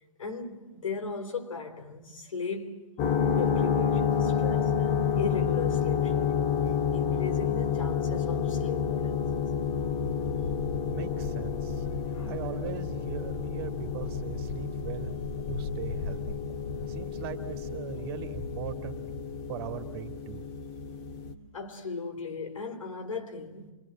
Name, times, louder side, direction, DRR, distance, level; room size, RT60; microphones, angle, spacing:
voice 1, 0.2-2.9 3.3-6.5 6.9-9.4 12.1-12.4 16.5-16.6 21.5-23.7, left 4 dB, 80° left, 3.2 m, -37 dB
sound 1, 3.0-21.3, left 7 dB, 35° left, 2.1 m, -29 dB
voice 2, 10.8-11.8 12.3-15.1 15.5-16.4 16.9-19.0 19.5-20.5, right 10 dB, 50° right, 2.4 m, -40 dB
26.0 x 22.0 x 7.5 m
hypercardioid pair, 120°, 17 cm